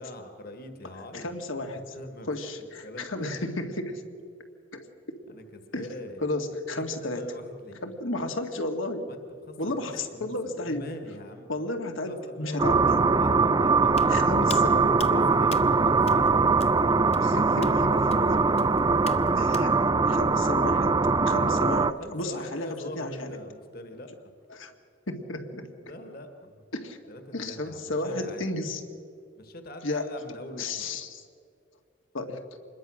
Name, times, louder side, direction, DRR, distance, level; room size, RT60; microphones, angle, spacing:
voice 1, 0.0-1.3 1.7-3.3 5.3-6.2 6.7-7.9 9.1-10.3 10.6-11.5 12.0-14.7 15.0-16.8 17.0-18.6 22.0-24.1 25.8-26.7 27.1-28.5 29.4-30.9, left 1 dB, 50° left, 6 dB, 1.8 m, -43 dB
voice 2, 1.1-2.0 2.3-4.0 4.7-4.9 5.7-5.9 6.2-7.2 7.8-9.1 9.6-10.9 11.5-13.0 14.1-14.9 17.2-17.7 19.4-21.0 21.3-22.7 23.0-23.4 24.5-24.7 25.1-25.7 26.7-27.0 27.3-28.8 29.8-30.1 30.6-31.2 32.1-32.4, left 2 dB, 80° left, 5 dB, 2.1 m, -33 dB
sound 1, 12.6-21.9, right 4 dB, 20° right, 0.4 m, -22 dB
Hands, 13.9-19.7, left 5 dB, 30° left, 0.8 m, -44 dB
26.0 x 21.5 x 6.3 m, 2.3 s
head